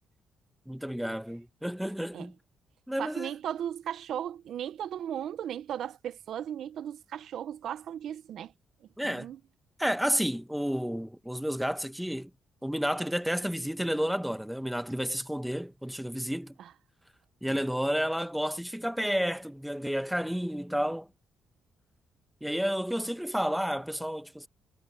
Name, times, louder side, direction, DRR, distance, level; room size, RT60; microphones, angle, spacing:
voice 1, 0.7-2.3 2.9-3.3 9.0-9.3 9.8-12.3 12.6-16.5 17.4-21.1 22.4-24.5, equal, ahead, 1.2 m, -31 dB
voice 2, 3.0-8.5 9.0-9.4 16.6-16.7, right 10 dB, 70° right, 0.8 m, -36 dB
cardioid pair, 90°, 0 cm